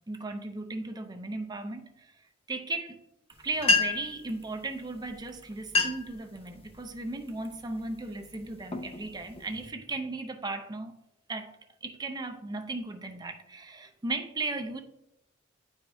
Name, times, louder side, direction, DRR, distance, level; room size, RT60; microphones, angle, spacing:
voice 1, 0.0-1.9 2.5-3.0 3.4-10.9 11.3-11.5 11.8-14.8, right 2 dB, 20° right, 0.5 m, -36 dB
sound 1, 3.3-3.4 3.6-4.2 5.1-5.2 5.6-6.2 6.7-7.0 7.6-7.9 8.4-9.7, left 3 dB, 30° left, 0.5 m, -28 dB
8.9 x 4.8 x 2.7 m
head